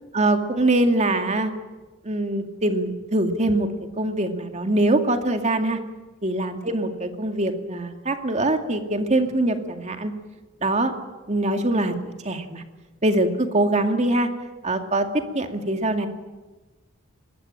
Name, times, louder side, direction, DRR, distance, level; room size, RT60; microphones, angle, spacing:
voice 1, 0.1-1.5 2.0-3.7 4.0-5.8 6.2-10.1 10.6-10.9 11.3-12.6 13.0-14.3 14.6-15.1 15.3-16.1, right 2 dB, 35° right, 6 dB, 2.3 m, -23 dB
24.0 x 20.5 x 9.1 m, 1.2 s
head